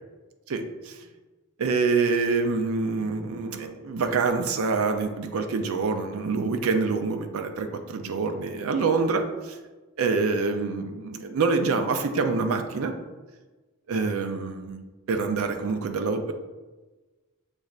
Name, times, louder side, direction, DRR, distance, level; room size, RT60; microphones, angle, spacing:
voice 1, 0.5-0.9 1.6-9.6 10.0-12.9 13.9-16.3, right 4 dB, 75° right, 6 dB, 0.5 m, -26 dB
6.5 x 3.1 x 2.4 m, 1.2 s
head